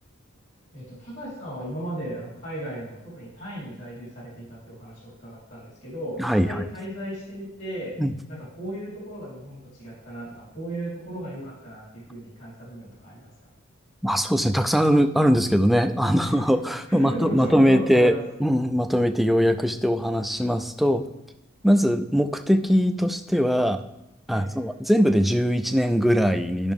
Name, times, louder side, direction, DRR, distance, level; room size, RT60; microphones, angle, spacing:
voice 1, 0.7-7.9 8.3-13.3 16.2-16.4 16.9-18.2 24.3-24.7, right 1 dB, 60° left, -6 dB, 3.7 m, -36 dB
voice 2, 6.2-6.6 8.0-8.1 14.0-21.0 21.6-23.8 24.3-26.7, equal, ahead, 7 dB, 0.4 m, -21 dB
13.0 x 5.8 x 3.6 m, 0.90 s
head